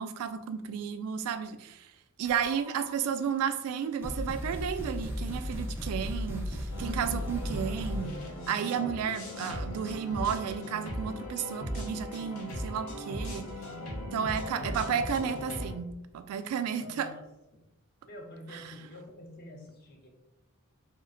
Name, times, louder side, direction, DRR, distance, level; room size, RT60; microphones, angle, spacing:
voice 1, 0.0-1.9 2.2-8.1 8.5-13.5 14.1-17.1 18.5-18.6, right 7 dB, 85° right, 11 dB, 0.3 m, -32 dB
sound 1, 2.2-2.9 3.6-3.7 4.0-8.2, equal, 10° right, 0.4 m, -36 dB
sound 2, 6.7-15.7, equal, 85° left, 0.7 m, -38 dB
voice 2, 14.2-15.3 16.6-17.3 18.0-20.1, left 1 dB, 45° left, 1 dB, 0.6 m, -46 dB
2.4 x 2.1 x 3.6 m, 0.92 s
head